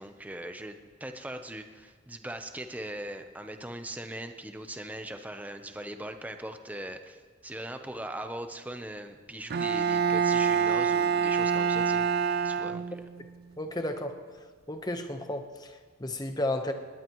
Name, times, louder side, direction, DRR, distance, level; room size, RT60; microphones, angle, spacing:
voice 1, 0.0-13.0, right 1 dB, 10° right, 7 dB, 0.8 m, -40 dB
Bowed string instrument, 9.5-13.2, right 6 dB, 50° right, 0.4 m, -26 dB
voice 2, 13.6-14.2 14.7-16.7, left 1 dB, 20° left, 6 dB, 1.1 m, -33 dB
19.5 x 19.0 x 3.1 m, 1.5 s
head